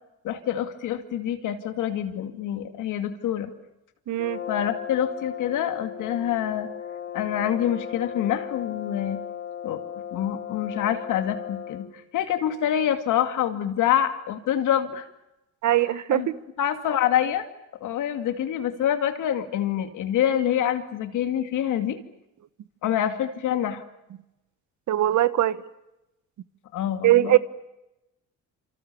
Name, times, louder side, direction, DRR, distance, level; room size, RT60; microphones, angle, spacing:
voice 1, 0.2-3.5 4.5-6.7 7.1-9.2 9.6-9.8 10.1-15.1 16.1-16.3 16.6-17.4 17.8-22.0 22.8-23.8 26.7-27.4, left 10 dB, 85° left, 2.5 m, -26 dB
voice 2, 4.1-4.4 15.6-16.3 24.9-25.6 27.0-27.4, right 14 dB, 70° right, 1.4 m, -21 dB
Brass instrument, 4.2-12.0, left 9 dB, 40° left, 4.8 m, -36 dB
27.5 x 26.5 x 7.1 m
cardioid pair, 90°, 30 cm